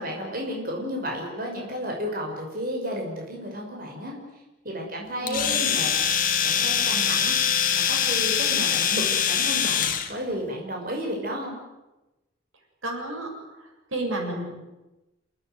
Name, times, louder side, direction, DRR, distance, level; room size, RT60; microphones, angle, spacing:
voice 1, 0.0-4.2 4.6-5.9 6.4-7.3 7.7-11.5, equal, 45° right, -1 dB, 6.2 m, -32 dB
voice 2, 5.2-5.7 12.8-13.3 13.9-14.6, right 1 dB, 90° right, 2 dB, 7.3 m, -31 dB
Domestic sounds home sounds, 5.3-10.1, left 8 dB, 40° left, 2.1 m, -23 dB
29.0 x 18.5 x 9.4 m, 1.0 s
head